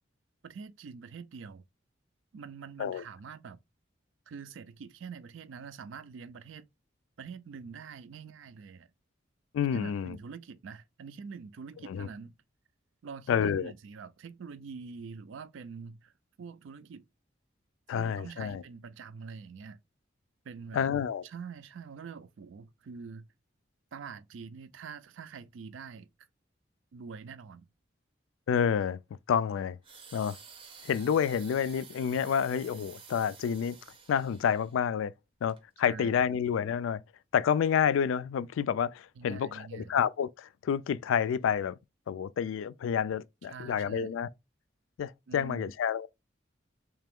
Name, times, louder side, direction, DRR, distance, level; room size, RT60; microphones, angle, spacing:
voice 1, 0.4-1.6 2.3-3.6 4.3-6.7 7.2-8.9 9.7-12.3 13.0-16.1 16.4-17.0 17.9-19.8 20.4-20.9 21.2-23.3 23.9-26.1 26.9-27.7 35.8-36.4 39.2-39.9 43.5-44.1 45.3-45.7, right 5 dB, 80° right, 0.4 m, -45 dB
voice 2, 9.5-10.2 11.9-12.1 13.3-13.7 17.9-18.6 20.7-21.2 28.5-29.0 29.3-29.8 30.1-30.4 30.8-33.8 34.1-35.1 35.4-37.0 37.3-41.8 42.1-44.3 45.0-46.1, left 7 dB, 85° left, 0.3 m, -29 dB
sound 1, 29.8-34.8 35.4-35.6, right 6 dB, 25° right, 0.5 m, -51 dB
3.3 x 2.9 x 3.5 m
head